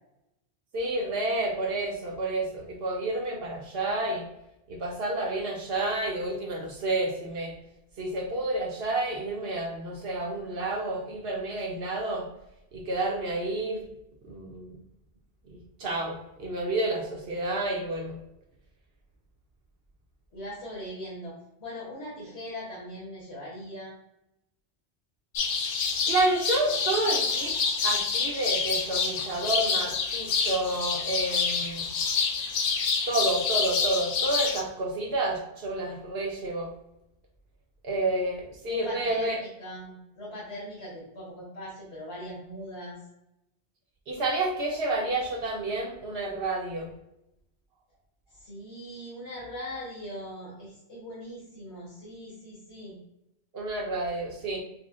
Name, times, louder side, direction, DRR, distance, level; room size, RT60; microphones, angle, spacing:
voice 1, 0.7-4.2 4.7-7.5 8.0-12.3 12.7-13.8 14.2-14.7 15.5-18.2 26.1-27.6 27.8-31.9 33.1-36.7 37.8-39.4 44.1-46.9 53.5-54.6, right 2 dB, 70° right, 1 dB, 0.9 m, -30 dB
voice 2, 20.3-24.0 38.7-43.0 48.3-53.0, equal, 85° left, -6 dB, 1.5 m, -40 dB
sound 1, 25.4-34.6, left 5 dB, 65° left, 0.7 m, -28 dB
5.9 x 2.1 x 2.4 m, 0.85 s
omnidirectional pair, 1.1 m